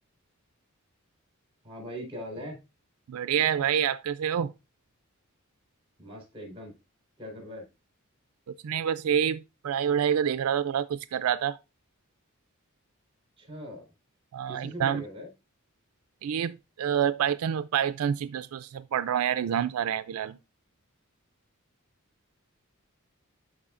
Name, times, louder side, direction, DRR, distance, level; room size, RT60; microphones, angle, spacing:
voice 1, 1.6-2.6 6.0-6.7 7.2-7.6 13.4-13.9 14.5-15.3, equal, 25° right, 4.1 m, -40 dB
voice 2, 3.1-4.5 8.6-11.6 14.3-15.0 16.2-20.4, right 8 dB, 80° right, 0.4 m, -27 dB
12.5 x 4.7 x 2.5 m
head